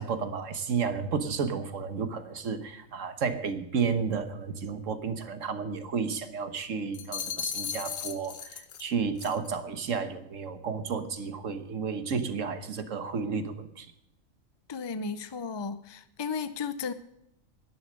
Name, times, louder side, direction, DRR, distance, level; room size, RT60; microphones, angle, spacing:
voice 1, 0.0-13.9, right 5 dB, 70° right, 10 dB, 1.5 m, -32 dB
sound 1, 6.9-8.9 9.2-9.5, left 8 dB, 90° left, 1.4 m, -36 dB
voice 2, 14.7-16.9, left 5 dB, 45° left, 12 dB, 0.3 m, -34 dB
11.0 x 10.5 x 6.4 m, 0.80 s
omnidirectional pair, 1.4 m